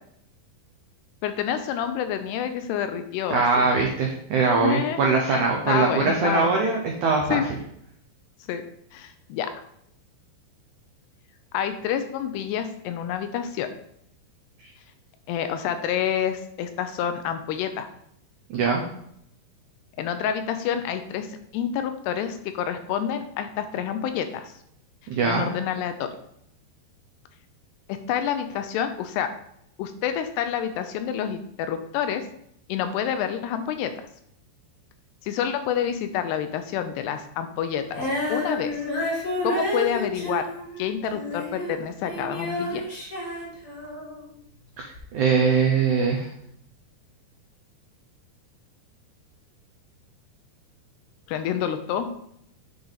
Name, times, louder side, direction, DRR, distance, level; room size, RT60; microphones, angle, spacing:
voice 1, 1.2-3.7 4.6-6.5 7.3-7.5 8.5-8.6 8.9-9.6 11.5-13.7 15.3-17.9 20.0-21.3 21.5-24.5 25.2-26.1 27.9-29.3 29.8-32.3 32.7-33.9 35.2-38.8 39.4-40.5 40.8-42.8 51.3-52.1, left 9 dB, 80° left, 9 dB, 2.6 m, -28 dB
voice 2, 3.3-7.4 18.5-18.8 25.1-25.5 44.8-46.3, right 4 dB, 90° right, 0 dB, 1.7 m, -22 dB
Female singing, 37.9-44.2 44.9-45.0, left 1 dB, 35° left, 1.5 m, -30 dB
8.5 x 5.4 x 4.0 m, 0.71 s
omnidirectional pair, 4.9 m